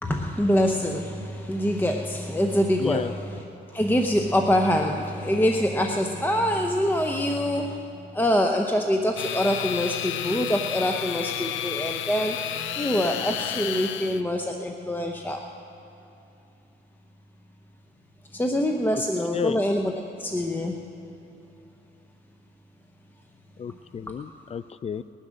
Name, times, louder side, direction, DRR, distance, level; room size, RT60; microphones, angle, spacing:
voice 1, 0.0-3.4 3.7-7.8 8.1-12.4 12.8-15.4 18.3-20.8, equal, 10° left, 3 dB, 0.8 m, -25 dB
voice 2, 2.8-3.1 18.9-19.0 19.3-19.6 23.6-25.0, left 7 dB, 30° left, 18 dB, 0.4 m, -31 dB
sound 1, 9.2-14.2, left 10 dB, 75° left, 0.6 m, -31 dB
20.0 x 9.9 x 6.5 m, 2.9 s
cardioid pair, 90°, 20 cm